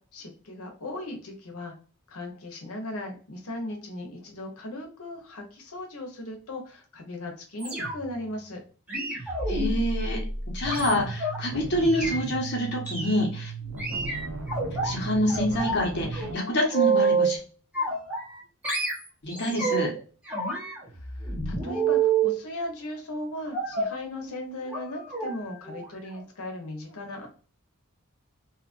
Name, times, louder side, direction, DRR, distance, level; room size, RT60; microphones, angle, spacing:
voice 1, 0.0-1.7 2.1-8.6 21.0-27.3, left 1 dB, 80° left, 3 dB, 0.9 m, -37 dB
sound 1, 7.6-8.2 8.9-11.4 11.8-12.2 12.9-13.2 13.8-14.9 15.3-15.8 16.1-17.4 17.7-18.4 18.6-20.0 20.3-22.4 23.5-24.0 24.7-24.8 25.1-25.3 25.6-25.8 26.1-26.2, right 4 dB, 5° right, 0.9 m, -28 dB
voice 2, 9.5-10.2 10.5-13.5 14.8-17.4 19.2-19.9, equal, 50° left, 0 dB, 1.0 m, -26 dB
sound 2, 10.6-16.3, right 3 dB, 85° right, 0.6 m, -35 dB
2.8 x 2.4 x 2.5 m, 0.39 s
head